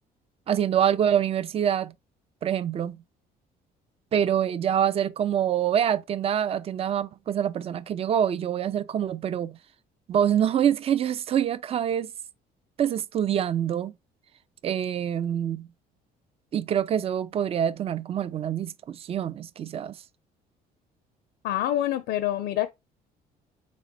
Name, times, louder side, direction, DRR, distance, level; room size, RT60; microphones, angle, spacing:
voice 1, 0.5-1.9 2.4-3.0 4.1-9.6 10.1-12.1 12.8-13.9 14.6-15.7 16.5-20.0, right 9 dB, 35° right, 0.4 m, -25 dB
voice 2, 21.4-22.7, left 13 dB, 85° left, 0.5 m, -26 dB
4.1 x 3.1 x 3.9 m
cardioid pair, 110°, 17 cm